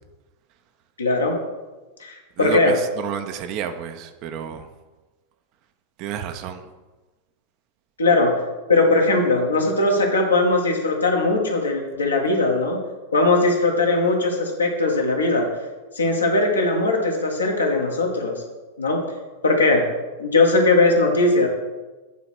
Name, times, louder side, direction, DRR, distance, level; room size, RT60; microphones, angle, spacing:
voice 1, 1.0-1.3 2.0-2.7 8.0-8.3 8.7-12.8 13.1-15.5 15.9-18.4 18.8-19.0 19.4-19.8 20.2-21.5, left 2 dB, 75° left, 1 dB, 1.6 m, -19 dB
voice 2, 2.4-4.7 6.0-6.7, right 8 dB, 40° right, 8 dB, 0.8 m, -30 dB
9.3 x 4.0 x 6.1 m, 1.2 s
figure-of-eight pair, 90°, 0 cm